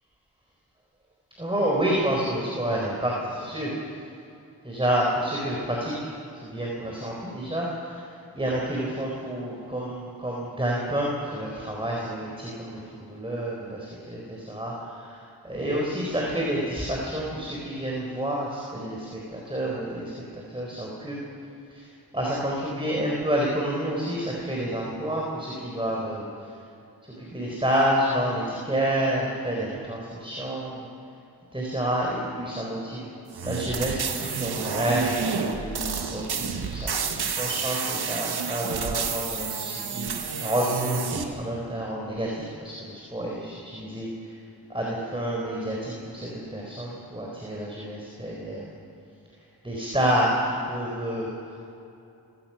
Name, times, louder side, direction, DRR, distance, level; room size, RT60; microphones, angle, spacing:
voice 1, 1.4-3.7 4.6-6.1 6.4-8.0 8.3-21.2 21.7-21.9 22.1-26.2 27.2-30.8 31.5-33.0 33.4-44.1 44.7-48.7 49.6-51.3, right 1 dB, 15° right, -3 dB, 4.4 m, -29 dB
sound 1, 33.3-41.2, right 6 dB, 75° right, 1.6 m, -30 dB
28.5 x 16.5 x 5.9 m, 2.7 s
cardioid pair, 55°, 40 cm